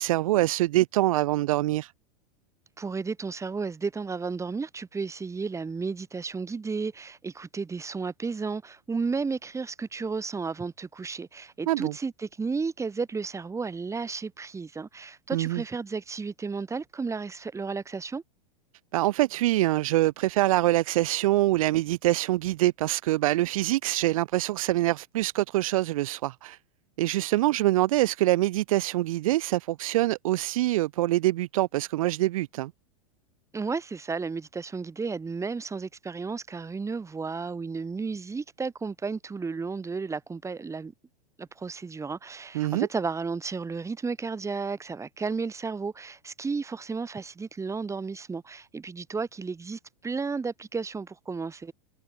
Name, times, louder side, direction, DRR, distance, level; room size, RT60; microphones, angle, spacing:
voice 1, 0.0-1.9 11.7-11.9 15.3-15.6 18.9-26.6 27.0-32.7 42.5-42.9, right 16 dB, 60° right, 1.1 m, -25 dB
voice 2, 2.8-18.2 33.5-40.9 41.4-51.7, right 4 dB, 15° right, 7.6 m, -33 dB
hypercardioid pair, 95°, 20 cm